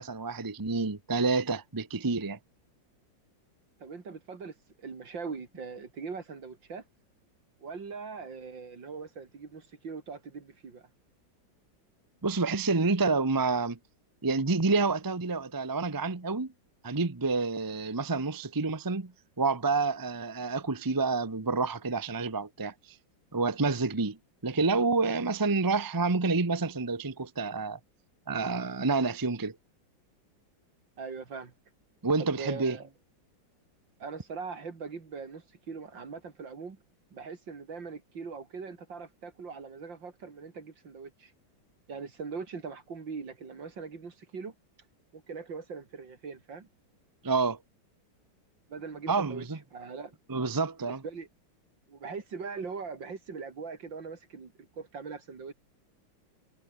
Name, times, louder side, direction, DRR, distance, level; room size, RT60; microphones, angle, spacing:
voice 1, 0.0-2.4 12.2-13.8 14.2-16.5 16.8-19.1 19.4-22.7 23.3-24.2 24.4-27.8 28.3-29.5 32.0-32.8 47.2-47.6 49.1-49.6 50.3-51.0, right 3 dB, 15° right, 0.8 m, -28 dB
voice 2, 3.8-6.8 7.6-10.9 31.0-31.5 32.2-32.9 34.0-36.8 37.1-41.3 41.9-44.6 45.1-46.7 48.7-49.5 49.7-50.1 50.8-51.3 51.9-55.5, right 5 dB, 70° right, 3.6 m, -41 dB
omnidirectional pair, 2.1 m